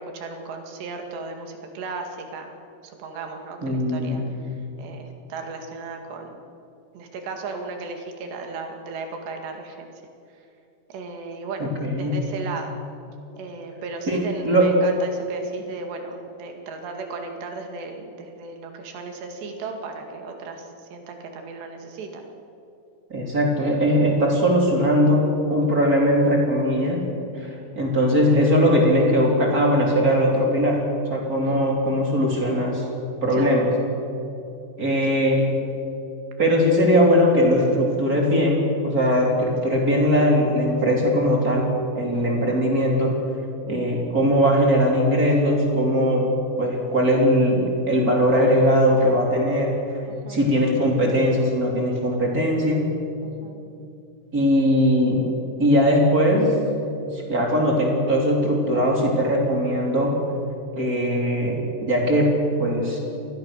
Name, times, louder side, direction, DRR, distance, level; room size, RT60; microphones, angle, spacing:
voice 1, 0.0-2.5 2.8-4.2 4.8-6.4 6.9-9.9 10.9-11.7 12.0-12.8 13.4-22.2 31.4-31.6 33.3-33.5 42.1-42.3 50.1-50.4 53.2-53.6, right 3 dB, 90° right, 4 dB, 4.4 m, -35 dB
voice 2, 3.6-4.3 11.8-12.2 14.1-14.7 23.1-27.0 27.4-27.5 27.8-30.8 31.1-32.8 33.2-33.7 34.8-35.5 36.4-41.7 41.9-43.1 43.7-46.3 46.6-49.7 50.3-52.9 54.3-55.3 55.6-56.6 57.0-60.2 60.8-61.6 61.9-63.0, equal, 20° right, -1 dB, 3.6 m, -20 dB
26.0 x 20.5 x 6.6 m, 2.7 s
omnidirectional pair, 4.7 m